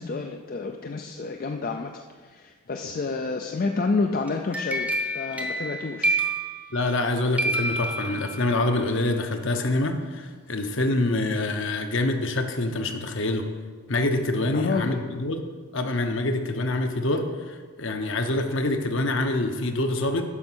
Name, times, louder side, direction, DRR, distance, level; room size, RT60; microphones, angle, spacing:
voice 1, 0.0-6.2 14.5-15.2, left 3 dB, 40° left, 5 dB, 0.4 m, -29 dB
sound 1, 4.3-7.1 7.4-8.7, right 1 dB, 5° right, 0.7 m, -28 dB
voice 2, 6.7-13.4 13.9-15.4 15.7-20.2, left 2 dB, 55° left, 6 dB, 0.9 m, -26 dB
9.8 x 5.9 x 6.2 m, 1.5 s
head